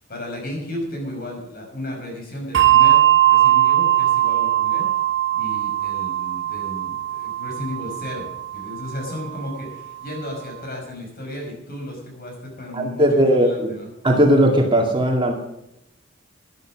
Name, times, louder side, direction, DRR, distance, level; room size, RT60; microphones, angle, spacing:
voice 1, 0.1-4.9 5.3-13.9, left 1 dB, 50° left, 1 dB, 5.6 m, -34 dB
Bell, 2.5-9.4, right 13 dB, 65° right, 1.0 m, -19 dB
voice 2, 12.7-13.7 14.0-15.3, equal, 25° right, 2 dB, 1.9 m, -17 dB
12.0 x 11.5 x 6.3 m, 0.85 s
head